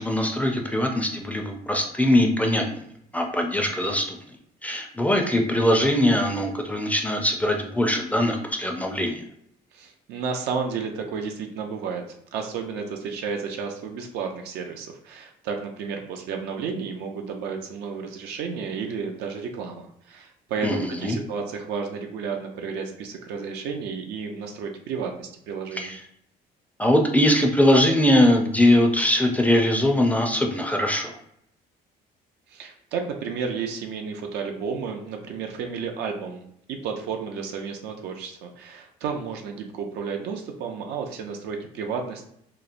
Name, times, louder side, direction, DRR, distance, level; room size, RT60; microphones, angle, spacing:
voice 1, 0.0-2.8 3.1-4.2 4.6-9.2 20.6-21.2 25.7-26.0 26.8-31.1, left 1 dB, 10° left, 3 dB, 0.3 m, -21 dB
voice 2, 9.7-12.0 12.3-25.9 32.5-36.4 36.7-42.3, right 5 dB, 80° right, 3 dB, 0.4 m, -32 dB
2.9 x 2.0 x 2.4 m, 0.71 s
cardioid pair, 110°, 17 cm